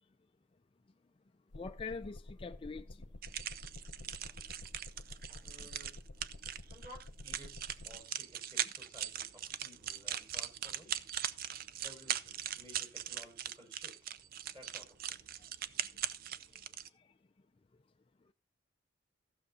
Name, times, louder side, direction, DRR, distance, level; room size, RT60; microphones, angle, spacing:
sound 1, 1.5-8.0, left 2 dB, 70° left, 0.9 m, -50 dB
voice 1, 1.5-3.1 5.3-5.4 15.7-15.8 16.5-16.6 16.9-17.1, left 4 dB, 30° left, 0.4 m, -44 dB
sound 2, 3.2-16.9, right 10 dB, 55° right, 0.5 m, -40 dB
voice 2, 5.4-6.0 6.7-7.6 7.8-11.1 11.5-14.2 14.5-15.4, left 1 dB, 25° right, 5.9 m, -57 dB
14.5 x 6.5 x 4.1 m
head